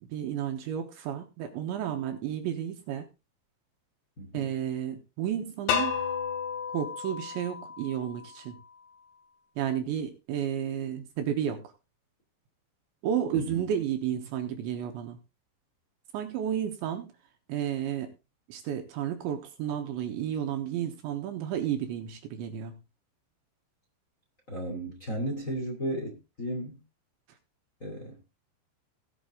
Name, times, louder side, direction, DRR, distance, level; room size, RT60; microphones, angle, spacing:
voice 1, 0.0-3.1 4.3-5.9 6.7-8.6 9.6-11.7 13.0-15.2 16.1-17.1 17.5-18.1 18.5-22.8, right 9 dB, 75° right, 3.2 m, -32 dB
voice 2, 4.2-4.5 13.3-13.6 24.5-26.8 27.8-28.2, right 1 dB, 20° left, 2.2 m, -34 dB
sound 1, 5.7-8.6, left 7 dB, 85° left, 4.3 m, -32 dB
18.0 x 6.3 x 3.8 m
omnidirectional pair, 5.9 m